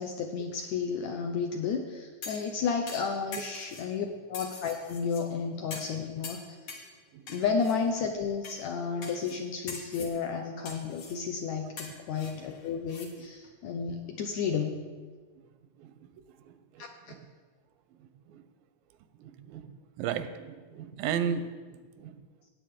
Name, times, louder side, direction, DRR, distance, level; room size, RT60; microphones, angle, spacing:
voice 1, 0.0-6.4 7.3-14.8, left 5 dB, 75° left, 4 dB, 1.7 m, -32 dB
sound 1, 2.2-2.5 2.9-3.9 4.3-5.2 5.7-6.0 6.2-6.9 7.3-7.8 8.4-8.6 9.0-9.4 9.7-10.1 10.6-11.2 11.8-13.1 13.4-13.5, left 4 dB, 55° left, 1.7 m, -43 dB
voice 2, 15.8-16.1 16.4-17.3 18.0-18.4 19.1-22.3, right 8 dB, 90° right, 11 dB, 2.4 m, -37 dB
17.0 x 8.4 x 3.7 m, 1.4 s
omnidirectional pair, 3.9 m